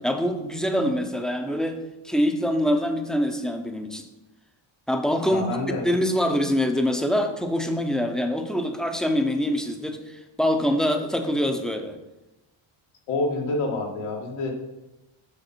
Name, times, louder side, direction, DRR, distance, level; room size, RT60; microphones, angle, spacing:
voice 1, 0.0-1.8 2.0-4.1 4.9-5.5 5.8-12.0, equal, ahead, 5 dB, 0.5 m, -24 dB
voice 2, 5.3-5.9 13.1-14.5, left 2 dB, 85° left, -1 dB, 2.1 m, -27 dB
7.9 x 6.3 x 4.4 m, 0.99 s
cardioid pair, 160°, 49 cm